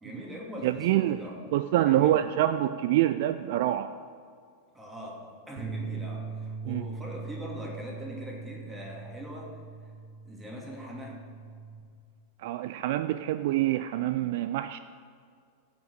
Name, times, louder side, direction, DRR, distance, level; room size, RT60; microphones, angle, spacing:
voice 1, 0.0-1.5 1.8-2.3 4.7-9.5 10.2-11.2, equal, 10° right, -2 dB, 2.6 m, -41 dB
voice 2, 0.6-1.2 1.5-3.9 6.7-6.8 12.4-14.8, right 13 dB, 50° right, 12 dB, 0.3 m, -26 dB
Bass guitar, 5.6-11.8, right 5 dB, 35° right, 1.9 m, -40 dB
15.0 x 5.9 x 7.0 m, 2.2 s
figure-of-eight pair, 90°, 0 cm